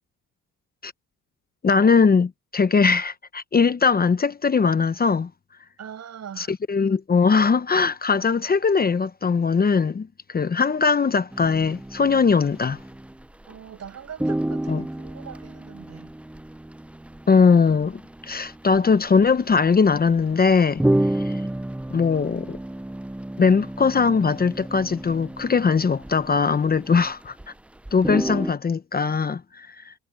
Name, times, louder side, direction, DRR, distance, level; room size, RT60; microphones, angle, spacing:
voice 1, 1.6-5.3 6.4-12.8 14.7-14.8 17.3-20.8 21.1-21.4 21.9-22.6 23.4-27.3 27.9-29.9, left 5 dB, 30° left, 0.9 m, -20 dB
voice 2, 5.8-6.5 13.5-16.1, right 8 dB, 55° right, 6.9 m, -41 dB
sound 1, 11.3-13.6 13.8-13.9 14.2-27.5 27.8-28.5, right 1 dB, 5° right, 0.5 m, -31 dB
cardioid pair, 100°, 32 cm